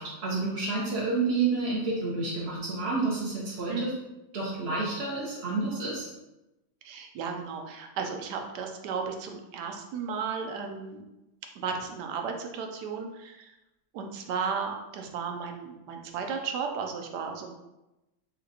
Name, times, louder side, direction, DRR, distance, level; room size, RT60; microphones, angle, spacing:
voice 1, 0.0-3.9 4.3-6.1, right 3 dB, 55° right, -5 dB, 0.7 m, -29 dB
voice 2, 6.8-11.0 11.6-13.5 13.9-17.5, right 5 dB, 85° right, 4 dB, 1.2 m, -34 dB
3.3 x 2.9 x 3.9 m, 0.96 s
omnidirectional pair, 1.7 m